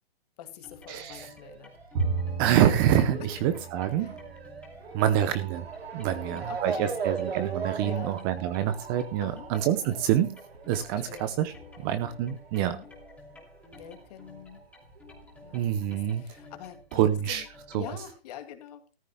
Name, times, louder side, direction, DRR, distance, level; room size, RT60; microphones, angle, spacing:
voice 1, 0.4-1.7 4.0-4.1 6.1-7.0 7.8-8.2 9.2-9.5 10.9-11.4 11.8-12.1 12.6-12.9 13.8-14.6 15.4-17.0 17.3-17.5 17.7-18.8, left 11 dB, 40° left, 8 dB, 2.2 m, -45 dB
sound 1, 0.6-18.1, left 3 dB, 5° left, 2.8 m, -52 dB
voice 2, 0.9-1.3 2.4-4.2 4.9-5.7 5.9-10.4 10.7-12.8 15.5-16.2 16.9-17.4 17.7-17.8, right 10 dB, 20° right, 11 dB, 0.8 m, -26 dB
Motor vehicle (road) / Siren, 1.0-14.0 14.3-15.4 16.1-16.2 16.4-16.5, right 5 dB, 85° right, 2.7 m, -40 dB
Bowed string instrument, 1.9-5.3, right 4 dB, 40° right, 3.3 m, -35 dB
15.0 x 14.0 x 2.2 m, 0.31 s
hypercardioid pair, 150°, 30 cm